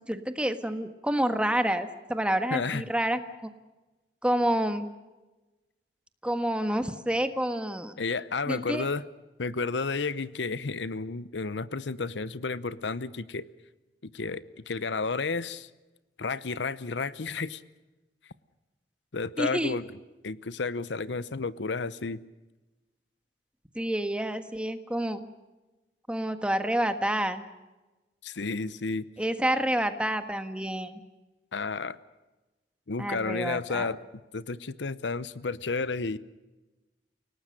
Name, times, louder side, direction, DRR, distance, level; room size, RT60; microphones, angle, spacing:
voice 1, 0.1-3.5 4.2-4.9 6.2-7.9 8.5-8.9 19.4-19.8 23.7-25.3 26.1-27.4 29.2-31.0 33.0-33.9, right 1 dB, 5° right, 9 dB, 1.4 m, -28 dB
voice 2, 2.5-2.8 8.0-9.0 9.4-13.5 14.0-15.7 16.2-17.6 19.1-19.9 20.2-22.2 28.2-29.1 31.5-32.0 32.9-34.0 34.3-36.2, left 4 dB, 90° left, 17 dB, 0.8 m, -32 dB
30.0 x 18.5 x 6.6 m, 1.1 s
head